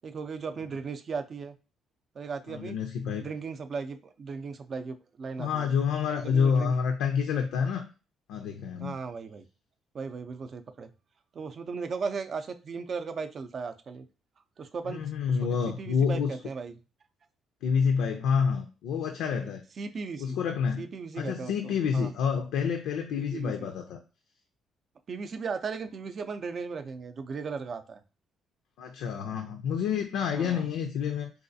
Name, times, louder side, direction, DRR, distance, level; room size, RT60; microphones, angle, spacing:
voice 1, 0.0-1.6 2.1-2.8 3.2-5.7 6.2-6.7 8.8-9.5 9.9-10.9 11.3-14.1 14.6-15.0 15.3-16.8 19.4-20.4 20.8-22.1 23.2-23.7 25.1-28.0 30.3-30.6, right 5 dB, 45° right, 7 dB, 0.4 m, -37 dB
voice 2, 2.5-3.3 5.4-7.9 8.3-9.0 14.9-16.4 17.6-19.6 20.2-20.8 21.2-24.0 28.8-31.3, left 6 dB, 90° left, 4 dB, 0.4 m, -28 dB
4.0 x 2.4 x 2.6 m, 0.32 s
cardioid pair, 100°, 0 cm